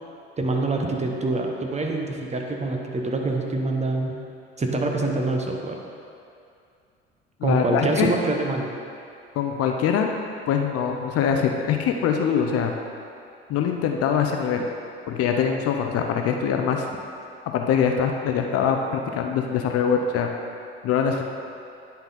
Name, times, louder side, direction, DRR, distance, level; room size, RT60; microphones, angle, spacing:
voice 1, 0.4-4.1 4.6-5.8 7.4-8.7, right 2 dB, 20° right, 1 dB, 1.0 m, -25 dB
voice 2, 7.4-8.1 9.4-10.1 10.5-12.7 13.5-14.7 15.1-16.8 17.5-20.3 20.8-21.2, left 7 dB, 50° left, 3 dB, 0.7 m, -23 dB
10.5 x 4.0 x 4.2 m, 2.5 s
hypercardioid pair, 65°, 31 cm